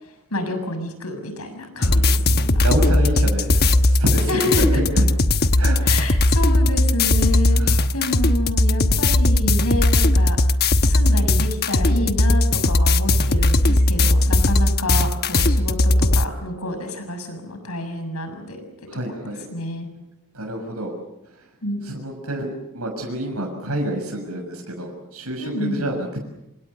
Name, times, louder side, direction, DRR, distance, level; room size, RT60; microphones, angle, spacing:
voice 1, 0.0-2.6 4.3-4.8 5.8-10.4 10.8-18.6 19.1-19.9 21.6-21.8 25.4-25.8, left 1 dB, 85° left, 8 dB, 6.8 m, -28 dB
sound 1, 1.8-16.2, left 2 dB, 50° left, 1.1 m, -18 dB
voice 2, 1.8-2.1 2.6-5.0 5.6-6.0 7.5-7.8 18.9-19.5 20.3-20.9 21.8-26.3, right 1 dB, 85° right, 0 dB, 6.5 m, -28 dB
27.0 x 27.0 x 6.9 m, 0.86 s
head